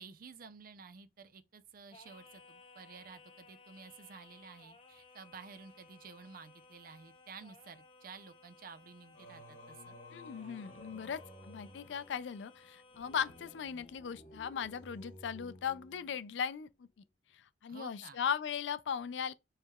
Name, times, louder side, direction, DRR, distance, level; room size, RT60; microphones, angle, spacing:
voice 1, 0.0-10.0 17.7-18.2, right 5 dB, 50° right, 0.5 m, -52 dB
Singing, 1.9-14.0, left 3 dB, 30° left, 0.7 m, -60 dB
Singing 2, 9.1-16.5, left 1 dB, 45° left, 1.1 m, -55 dB
voice 2, 10.1-16.7 17.3-19.3, left 7 dB, 80° left, 0.4 m, -38 dB
4.6 x 3.1 x 2.3 m
head